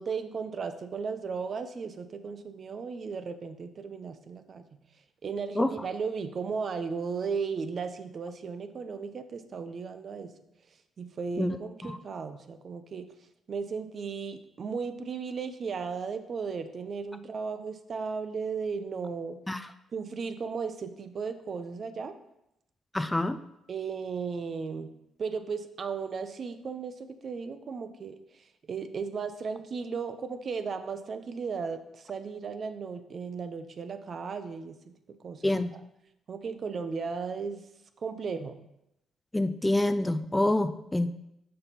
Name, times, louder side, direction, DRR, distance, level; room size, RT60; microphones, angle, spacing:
voice 1, 0.0-4.8 5.2-10.3 11.0-13.1 13.5-19.4 19.9-22.1 23.7-24.9 25.2-26.9 27.2-34.8 35.2-35.6 36.3-37.6 38.0-38.6, right 5 dB, 50° right, 9 dB, 0.6 m, -35 dB
voice 2, 22.9-23.4 35.4-35.7 39.3-41.1, left 1 dB, 10° left, 11 dB, 0.3 m, -26 dB
5.6 x 5.3 x 4.2 m, 0.84 s
cardioid pair, 90°, 0 cm